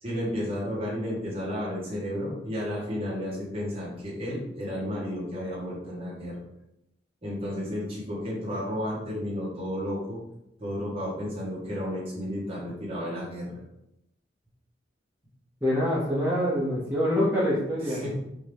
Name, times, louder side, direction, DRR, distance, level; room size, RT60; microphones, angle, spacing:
voice 1, 0.0-6.4 7.2-10.2 10.6-13.6 17.8-18.1, equal, 35° right, -6 dB, 1.7 m, -32 dB
voice 2, 15.6-18.0, equal, 10° right, -8 dB, 0.8 m, -25 dB
5.3 x 2.9 x 3.5 m, 0.87 s
head